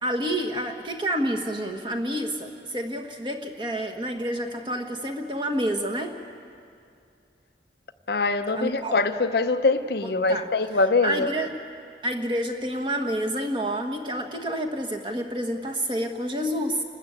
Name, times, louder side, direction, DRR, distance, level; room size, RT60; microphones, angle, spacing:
voice 1, 0.0-6.2 8.5-8.9 10.3-10.5 11.0-11.5 12.0-16.8, right 1 dB, 25° right, 1.5 m, -28 dB
voice 2, 8.1-11.3, left 3 dB, 60° left, 0.6 m, -23 dB
29.5 x 13.5 x 8.4 m
head